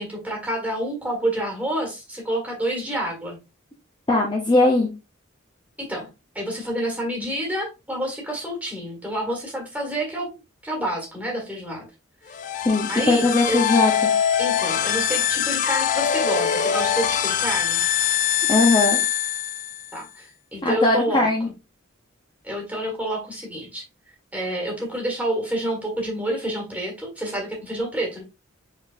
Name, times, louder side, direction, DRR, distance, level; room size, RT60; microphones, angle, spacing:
voice 1, 0.0-3.4 5.8-6.1 6.3-10.3 10.6-11.9 12.3-12.4 12.9-13.6 14.4-17.8 19.9-21.5 22.4-23.8 24.3-28.2, right 1 dB, 5° right, 0 dB, 1.6 m, -28 dB
voice 2, 4.1-4.9 12.6-13.9 18.5-19.0 20.6-21.5, left 2 dB, 20° left, -1 dB, 0.7 m, -19 dB
sound 1, 12.3-20.0, left 9 dB, 40° left, 0.3 m, -23 dB
4.9 x 3.8 x 2.5 m, 0.27 s
head